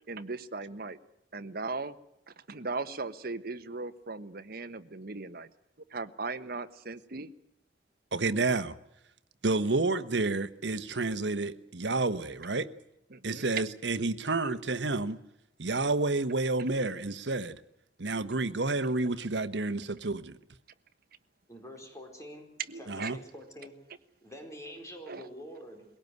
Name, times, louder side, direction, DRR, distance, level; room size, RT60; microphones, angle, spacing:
voice 1, 0.1-1.0 1.3-1.9 2.5-5.5 5.9-7.3 13.1-13.4 22.7-23.1 25.1-25.3, right 3 dB, 55° right, 1.3 m, -38 dB
voice 2, 8.1-8.7 9.4-12.7 13.2-15.2 15.6-17.6 18.0-20.4 22.9-23.2, right 3 dB, 75° right, 1.3 m, -30 dB
voice 3, 21.5-22.5 22.7-23.7 24.2-25.8, equal, 20° left, 4.4 m, -46 dB
22.5 x 17.5 x 9.5 m
head